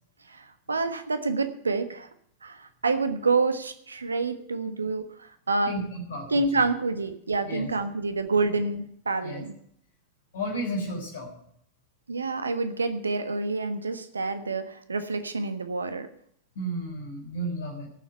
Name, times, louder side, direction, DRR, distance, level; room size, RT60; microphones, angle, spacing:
voice 1, 0.3-2.1 2.4-5.7 6.3-9.5 12.1-16.1, right 3 dB, 75° right, 10 dB, 1.4 m, -28 dB
voice 2, 5.6-6.6 7.4-7.7 9.2-9.4 10.3-11.4 16.6-17.9, equal, 60° left, 0 dB, 3.6 m, -33 dB
17.0 x 7.5 x 6.9 m, 0.66 s
figure-of-eight pair, 90°, 0 cm